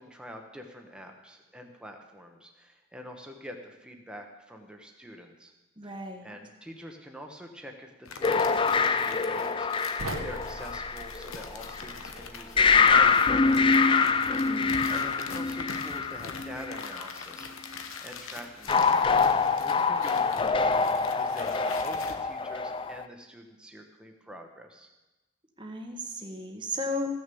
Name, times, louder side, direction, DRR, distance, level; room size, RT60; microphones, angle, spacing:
voice 1, 0.0-5.5 5.8-13.7 14.6-24.9, equal, 5° right, 3 dB, 1.2 m, -46 dB
voice 2, 5.8-6.3 14.4-14.9 25.6-27.2, left 1 dB, 20° right, 3 dB, 1.3 m, -35 dB
sound 1, 8.0-22.1, left 5 dB, 75° left, 1.0 m, -44 dB
sound 2, 8.2-11.9 12.6-17.0 18.7-23.0, left 5 dB, 25° left, 0.4 m, -25 dB
sound 3, 10.0-13.1, right 2 dB, 70° right, 1.2 m, -41 dB
15.5 x 6.5 x 7.0 m, 1.1 s
head